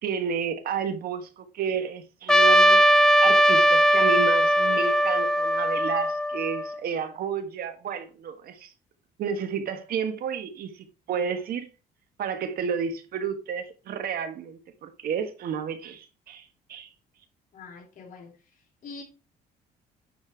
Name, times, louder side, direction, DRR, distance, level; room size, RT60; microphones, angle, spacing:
voice 1, 0.0-2.9 3.2-8.7 9.2-11.7 12.2-16.9, right 6 dB, 65° right, 1.4 m, -31 dB
Trumpet, 2.3-6.7, equal, 5° left, 0.5 m, -19 dB
voice 2, 17.5-18.3 18.8-19.0, left 4 dB, 55° left, 3.0 m, -43 dB
9.9 x 4.3 x 4.5 m
cardioid pair, 110°, 17 cm